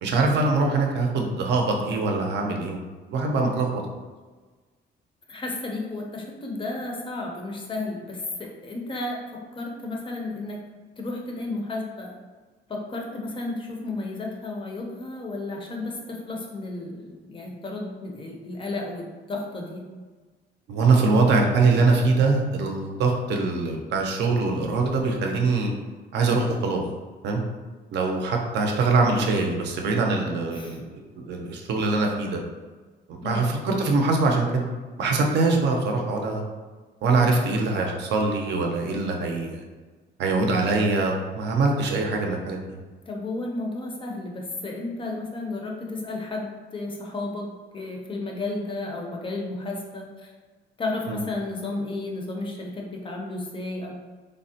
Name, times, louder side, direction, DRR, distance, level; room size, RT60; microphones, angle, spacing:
voice 1, 0.0-2.8 3.1-3.8 20.7-25.7 26.1-26.8 27.2-27.4 27.9-30.8 31.2-32.4 33.1-34.6 35.0-36.4 37.0-39.6 40.2-42.6 51.1-51.2, right 3 dB, 70° right, 2 dB, 0.5 m, -23 dB
voice 2, 5.3-10.6 11.0-12.2 12.7-19.8 30.5-30.8 33.2-33.5 43.1-47.5 47.7-50.3 50.8-54.0, left 2 dB, 30° left, 0 dB, 0.4 m, -33 dB
3.4 x 2.0 x 2.7 m, 1.4 s
cardioid pair, 150°, 18 cm